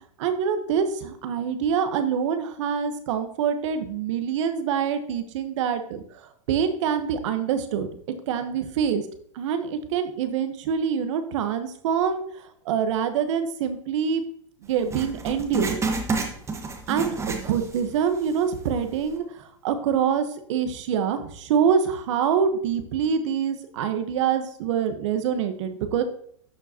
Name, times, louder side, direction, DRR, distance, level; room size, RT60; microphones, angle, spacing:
voice 1, 0.2-7.9 8.3-9.0 9.3-14.2 14.6-15.8 16.9-26.0, right 7 dB, 65° right, 8 dB, 1.2 m, -25 dB
Writing, 14.9-17.9 18.2-18.3 19.0-19.1, right 3 dB, 15° right, 1.3 m, -29 dB
12.5 x 4.6 x 2.9 m, 0.62 s
hypercardioid pair, 120°, 17 cm